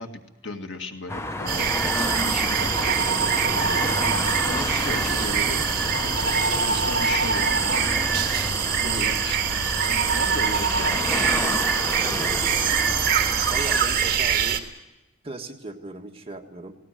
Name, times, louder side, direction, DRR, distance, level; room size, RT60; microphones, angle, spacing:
voice 1, 0.0-6.2 6.6-7.5 8.8-11.6, left 2 dB, 70° left, 4 dB, 2.1 m, -36 dB
sound 1, 1.1-13.8, left 1 dB, 15° left, 0.6 m, -30 dB
sound 2, 1.5-14.6, right 7 dB, 50° right, 1.7 m, -24 dB
voice 2, 12.0-12.4 13.5-14.6 15.2-16.7, right 2 dB, 30° right, 2 dB, 1.7 m, -37 dB
19.0 x 18.0 x 9.2 m, 1.0 s
head